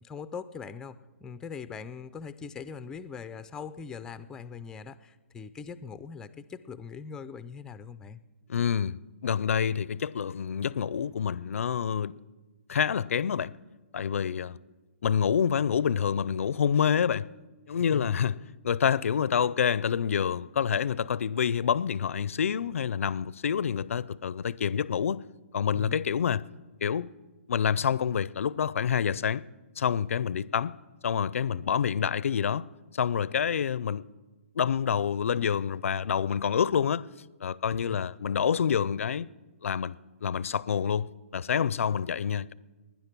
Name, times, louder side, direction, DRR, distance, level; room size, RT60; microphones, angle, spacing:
voice 1, 0.0-8.2 17.9-18.1 25.7-26.0 37.7-38.0, left 6 dB, 10° left, 0.4 m, -41 dB
voice 2, 8.5-9.0 9.2-12.1 12.7-13.5 13.9-14.6 15.0-17.3 17.7-18.4 18.6-25.2 25.5-26.4 26.8-27.1 27.5-29.4 29.8-30.7 31.0-32.6 32.9-34.1 34.6-37.1 37.4-39.3 39.6-40.0 40.2-42.5, left 7 dB, 75° left, 0.4 m, -27 dB
17.5 x 10.0 x 6.0 m
hypercardioid pair, 155°, 7 cm